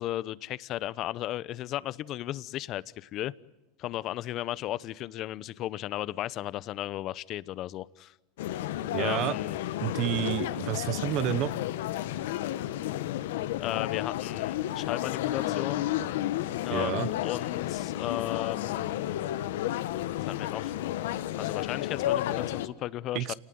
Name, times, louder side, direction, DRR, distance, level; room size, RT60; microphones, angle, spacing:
voice 1, 0.0-3.3 3.8-8.1 8.9-9.6 10.1-10.2 13.6-15.8 16.6-19.1 20.3-20.8 21.4-23.3, left 14 dB, 40° left, 19 dB, 0.8 m, -35 dB
sound 1, 8.4-22.7, left 13 dB, 80° left, 1.4 m, -32 dB
voice 2, 8.9-9.3 9.8-11.5 16.7-17.1 23.1-23.3, right 15 dB, 50° right, 18 dB, 1.1 m, -29 dB
28.5 x 19.0 x 9.5 m, 1.1 s
supercardioid pair, 135°, 0 cm